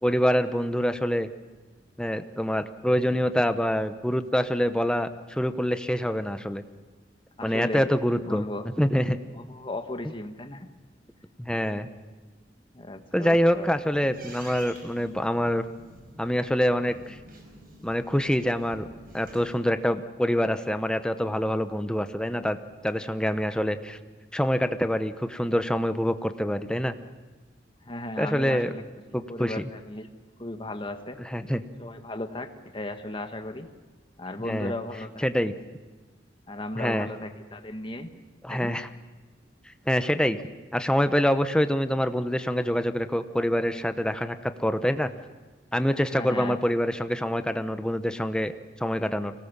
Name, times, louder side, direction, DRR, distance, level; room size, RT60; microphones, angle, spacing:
voice 1, 0.0-1.3 2.0-6.6 7.4-8.4 8.8-9.2 10.0-10.1 11.4-11.9 13.1-15.7 16.2-17.2 17.8-18.9 19.1-22.6 22.8-24.0 24.3-26.9 28.2-28.7 29.1-29.7 31.2-31.6 34.4-34.7 35.2-35.5 36.7-37.1 38.4-38.9 39.9-40.4 40.7-45.1 45.7-48.5 48.8-49.3, equal, 5° left, 10 dB, 0.8 m, -25 dB
voice 2, 7.4-8.7 9.3-10.7 12.7-13.7 27.8-30.1 30.4-31.2 31.8-33.7 34.2-35.3 36.5-38.1 38.5-38.7 46.1-46.6, left 1 dB, 30° left, 7 dB, 1.4 m, -36 dB
sound 1, 13.1-19.6, right 1 dB, 55° right, 5.2 m, -48 dB
24.5 x 18.0 x 7.3 m, 1.3 s
head